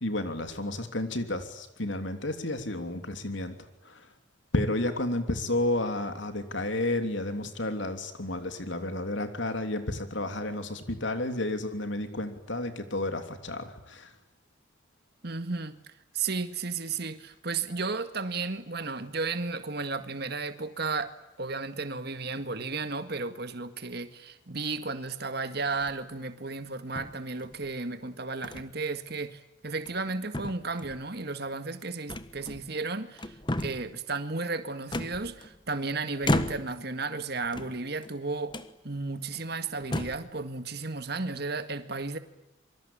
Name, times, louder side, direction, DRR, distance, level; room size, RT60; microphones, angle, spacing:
voice 1, 0.0-3.6 3.8-4.1 4.5-14.1, left 1 dB, 65° left, 3.1 m, -31 dB
voice 2, 15.2-21.1 21.4-33.4 33.6-38.6 38.8-42.2, right 3 dB, 50° right, 1.9 m, -34 dB
sound 1, 25.7-26.2 27.0-27.7 28.4-28.7 29.1-29.2 29.7-30.1 30.3-31.0 32.1-32.8 33.2-33.9 34.9-35.7 36.2-36.9 37.4-38.1 38.5-38.7 39.3-39.4 39.8-40.3, left 1 dB, 25° left, 1.4 m, -33 dB
27.5 x 24.5 x 8.8 m
head